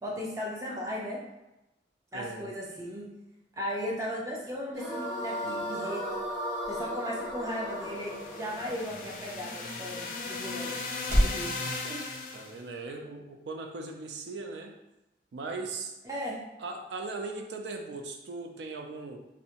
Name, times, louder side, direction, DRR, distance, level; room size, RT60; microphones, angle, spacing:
voice 1, 0.0-1.2 2.1-3.1 3.6-6.0 6.7-10.7 11.1-12.0 16.0-16.4, equal, 20° right, -3 dB, 0.5 m, -36 dB
voice 2, 2.1-2.5 12.3-14.8 15.3-16.0 16.6-19.2, right 3 dB, 80° right, 3 dB, 0.4 m, -39 dB
sound 1, 4.7-10.0, equal, 5° left, 0.8 m, -36 dB
sound 2, 5.2-11.5, equal, 45° right, 0.8 m, -35 dB
sound 3, 7.7-12.6, left 3 dB, 45° left, 0.3 m, -37 dB
2.6 x 2.1 x 2.8 m, 0.95 s
head